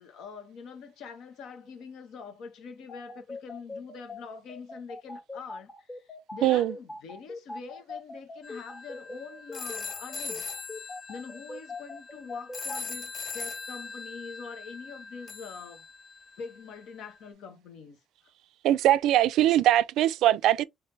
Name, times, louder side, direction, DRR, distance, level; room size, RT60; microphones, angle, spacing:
voice 1, 0.0-10.5 11.1-15.8 16.4-18.3, left 5 dB, 85° left, 1.1 m, -44 dB
sound 1, 2.9-12.8, left 2 dB, 30° left, 1.1 m, -41 dB
voice 2, 6.4-6.8 18.6-20.6, right 13 dB, 90° right, 0.3 m, -22 dB
sound 2, 8.4-16.5, left 4 dB, 55° left, 1.0 m, -40 dB
3.2 x 3.1 x 3.3 m
cardioid pair, 90°, 0 cm